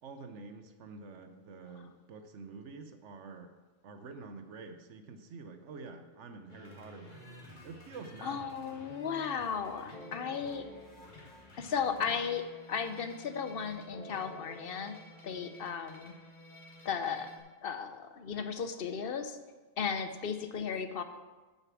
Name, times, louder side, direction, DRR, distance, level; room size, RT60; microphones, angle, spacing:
voice 1, 0.0-3.5 3.8-8.5, right 4 dB, 80° right, 7 dB, 1.1 m, -48 dB
sound 1, 6.5-17.4, left 2 dB, 40° left, 1.9 m, -52 dB
voice 2, 8.2-10.6 11.6-15.0 15.2-16.1 16.8-17.3 17.6-19.4 19.8-21.0, left 6 dB, 55° left, 9 dB, 0.8 m, -35 dB
8.5 x 6.7 x 6.1 m, 1.3 s
omnidirectional pair, 1.2 m